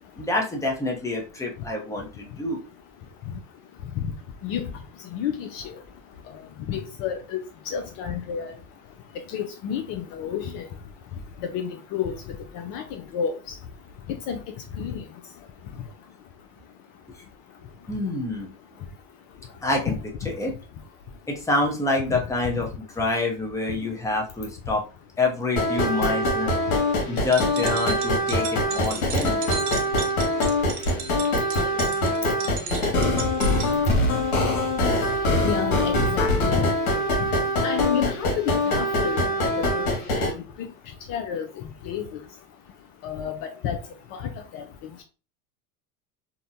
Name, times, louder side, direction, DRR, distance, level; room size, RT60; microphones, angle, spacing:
voice 1, 0.2-2.6 17.9-18.5 19.6-20.0 20.2-20.5 21.3-24.8 25.2-26.5 27.1-29.4, left 2 dB, 5° left, 0.7 m, -27 dB
voice 2, 5.1-5.7 6.7-7.4 7.7-8.5 9.3-10.6 11.5-12.1 12.5-13.4 14.3-14.4 14.8-15.0 19.9-20.0 35.4-36.7 37.2-37.3 37.6-39.2 39.6-39.9 40.1-40.7 41.1-41.5 41.8-42.0 43.0-43.8 44.1-44.6, left 8 dB, 50° left, 0.5 m, -30 dB
sound 1, 25.6-40.3, left 1 dB, 75° left, 1.1 m, -23 dB
sound 2, 27.2-33.7, right 6 dB, 85° right, 0.7 m, -35 dB
2.7 x 2.1 x 2.6 m
hypercardioid pair, 90°, 44 cm